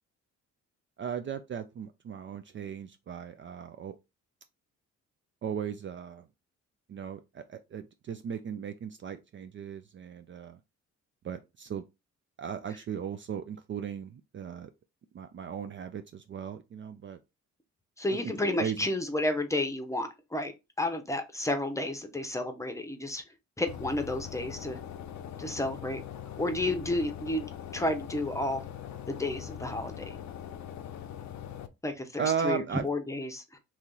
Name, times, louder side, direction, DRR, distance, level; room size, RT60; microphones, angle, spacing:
voice 1, 1.0-4.0 5.4-6.3 6.9-10.6 11.2-11.8 12.4-14.7 15.1-17.2 18.6-18.8 32.2-32.8, right 7 dB, 40° right, 0.4 m, -36 dB
voice 2, 18.0-20.5 20.8-23.2 23.6-24.8 25.4-26.0 26.4-27.5 27.7-28.6 29.1-30.2 31.8-33.6, left 1 dB, 10° left, 0.8 m, -31 dB
sound 1, 23.7-31.7, left 9 dB, 65° left, 0.6 m, -42 dB
3.0 x 2.7 x 3.7 m
cardioid pair, 90°, 30 cm